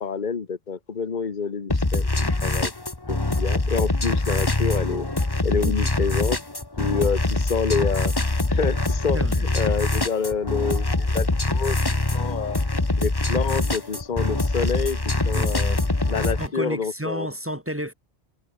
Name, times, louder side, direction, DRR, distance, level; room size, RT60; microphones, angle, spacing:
voice 1, 0.0-2.7 3.1-5.1 5.4-6.4 6.8-8.1 8.5-9.2 9.5-11.8 12.1-12.6 13.0-15.8 16.1-17.3, left 5 dB, 45° left, 1.4 m, -28 dB
sound 1, 1.7-16.5, left 2 dB, 20° left, 1.5 m, -24 dB
voice 2, 9.1-9.6 15.3-15.9 16.4-17.9, equal, 10° right, 1.9 m, -32 dB
omnidirectional pair, 1.1 m